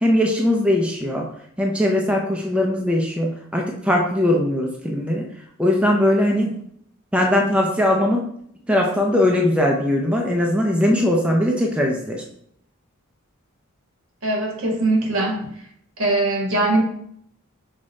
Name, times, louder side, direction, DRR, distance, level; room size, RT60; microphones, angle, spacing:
voice 1, 0.0-1.3 1.6-5.3 5.6-6.6 7.1-8.3 8.7-12.2, left 1 dB, 5° right, 0 dB, 0.4 m, -20 dB
voice 2, 14.2-15.4 16.0-16.8, right 2 dB, 75° right, -1 dB, 1.4 m, -21 dB
4.9 x 2.2 x 4.0 m, 0.69 s
head